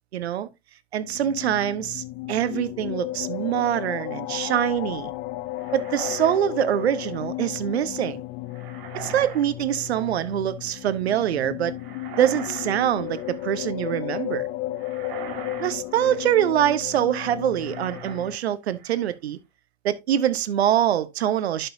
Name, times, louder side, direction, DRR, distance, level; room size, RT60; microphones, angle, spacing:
voice 1, 0.1-0.5 0.9-5.1 5.7-8.2 8.9-11.7 12.2-14.5 15.6-19.4 19.8-21.7, right 11 dB, 70° right, 1.0 m, -24 dB
sound 1, 1.0-18.4, left 16 dB, 35° left, 0.6 m, -34 dB
sound 2, 5.5-7.2 8.5-9.5 9.7-10.3 11.7-12.7 13.0-13.5 14.7-16.4 17.5-18.4 18.7-19.1, right 7 dB, 50° right, 3.1 m, -41 dB
11.0 x 5.6 x 2.7 m
figure-of-eight pair, 95°, 33 cm